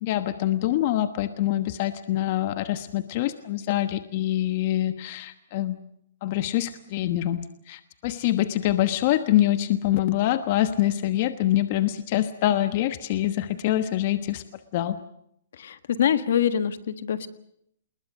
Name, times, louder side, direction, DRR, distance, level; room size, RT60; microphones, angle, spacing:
voice 1, 0.0-5.8 6.2-14.4 14.7-15.0, left 13 dB, 40° left, 11 dB, 1.2 m, -25 dB
voice 2, 15.6-17.3, left 9 dB, 65° left, 12 dB, 1.6 m, -24 dB
27.5 x 21.0 x 6.4 m, 0.72 s
hypercardioid pair, 160°, 0 cm